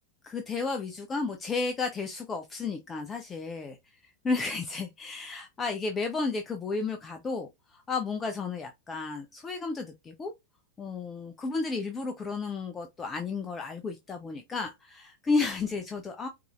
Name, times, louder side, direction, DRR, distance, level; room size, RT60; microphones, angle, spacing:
voice 1, 0.2-3.8 4.2-10.3 10.8-16.3, left 4 dB, 20° left, 0.6 m, -32 dB
4.7 x 2.6 x 2.3 m
figure-of-eight pair, 90°, 0 cm